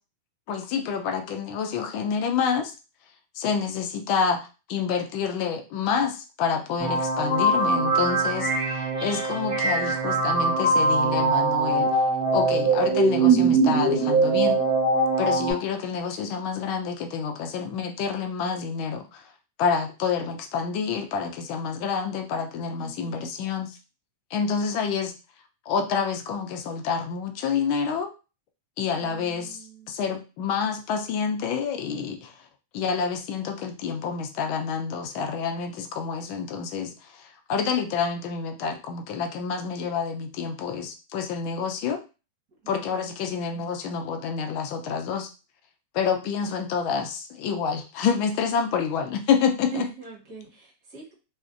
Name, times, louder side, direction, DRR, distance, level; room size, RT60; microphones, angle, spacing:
voice 1, 0.5-2.7 3.4-11.9 12.3-14.6 15.2-19.2 19.6-23.7 24.3-25.1 25.7-28.1 28.8-29.6 29.9-32.3 32.7-36.9 37.5-42.0 42.7-45.3 45.9-49.9, left 6 dB, 50° left, 5 dB, 0.5 m, -28 dB
sound 1, 6.8-15.5, right 3 dB, 25° right, 1.0 m, -22 dB
voice 2, 22.8-23.3 28.9-29.9 42.6-43.1 49.7-51.1, right 8 dB, 45° right, -3 dB, 1.2 m, -41 dB
2.5 x 2.1 x 2.5 m, 0.32 s
supercardioid pair, 140°, 0 cm